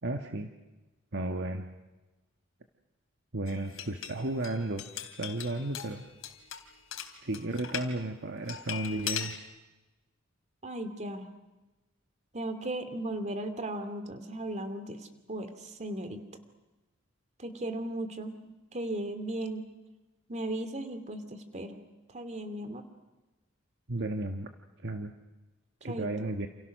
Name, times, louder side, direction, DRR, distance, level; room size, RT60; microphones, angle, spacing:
voice 1, 0.0-0.5 1.1-1.7 3.3-4.8 5.2-6.0 7.2-9.3 23.9-24.5 24.8-25.1 25.8-26.5, right 2 dB, 60° right, 5 dB, 1.5 m, -33 dB
sound 1, 3.5-7.9 8.5-9.4, left 9 dB, 85° left, 3.1 m, -40 dB
voice 2, 10.6-11.3 12.3-16.2 17.4-19.6 20.3-21.8 22.1-22.8 25.8-26.3, right 1 dB, 35° right, 9 dB, 2.6 m, -36 dB
29.0 x 28.5 x 6.5 m, 1.1 s
head